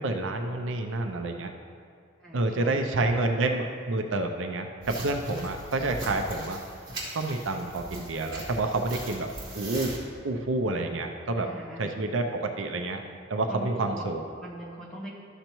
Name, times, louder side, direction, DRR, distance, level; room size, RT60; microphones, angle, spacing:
voice 1, 0.0-1.5 2.3-6.6 7.1-9.3 9.5-9.9 10.2-11.5 11.8-13.0 13.3-14.2, right 2 dB, 70° right, 4 dB, 0.5 m, -28 dB
voice 2, 2.2-3.3 11.3-12.1 13.5-14.1 14.4-15.2, right 1 dB, 5° left, -6 dB, 1.3 m, -41 dB
sound 1, 4.8-10.0, right 1 dB, 25° right, 2.1 m, -40 dB
12.0 x 6.6 x 3.0 m, 2.2 s
head